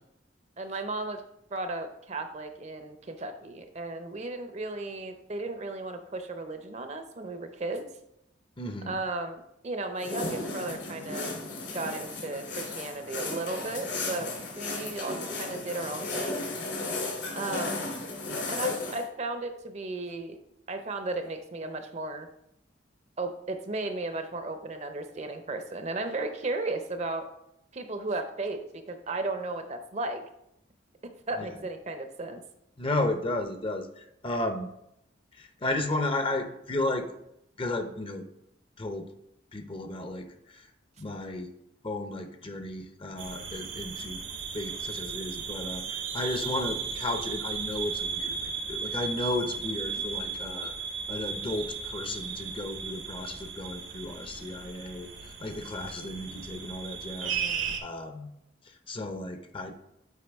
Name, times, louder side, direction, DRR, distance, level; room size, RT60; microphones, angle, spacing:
voice 1, 0.6-1.2 1.5-7.9 8.9-11.3 11.7-16.5 17.3-18.0 18.5-20.4 20.7-22.3 23.2-27.2 27.7-30.2 31.3-32.4 49.8-50.0 57.2-57.8, right 2 dB, 35° right, 7 dB, 0.6 m, -35 dB
voice 2, 8.6-9.0 31.4-31.6 32.8-34.7 35.3-37.1 37.6-38.2 38.8-39.1 39.5-40.7 41.0-41.5 41.8-44.2 44.5-50.7 51.1-58.3 58.6-59.7, left 2 dB, 30° left, 7 dB, 0.6 m, -34 dB
sound 1, 10.0-19.0, left 3 dB, 70° left, 2.8 m, -35 dB
sound 2, 43.2-57.8, right 6 dB, 75° right, 0.9 m, -36 dB
8.3 x 4.7 x 3.5 m, 0.78 s
head